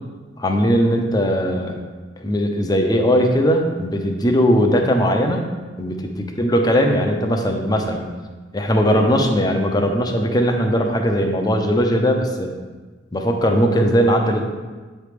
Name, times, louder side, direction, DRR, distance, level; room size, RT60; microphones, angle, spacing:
voice 1, 0.4-1.8 2.2-5.4 5.8-8.0 8.5-12.6 13.1-14.4, equal, 20° left, 3 dB, 0.6 m, -19 dB
7.9 x 3.2 x 5.1 m, 1.3 s
head